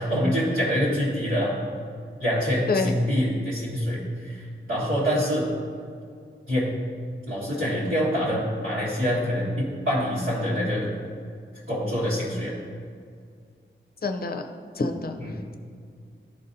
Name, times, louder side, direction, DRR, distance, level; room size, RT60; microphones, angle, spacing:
voice 1, 0.0-1.5 2.2-5.5 6.5-6.7 7.3-10.9 11.7-12.6 15.2-15.4, equal, 75° right, -10 dB, 1.7 m, -25 dB
voice 2, 14.0-14.5 14.8-15.2, left 3 dB, 45° left, 6 dB, 0.6 m, -26 dB
12.0 x 4.1 x 2.7 m, 2.2 s
wide cardioid pair, 100°, 21 cm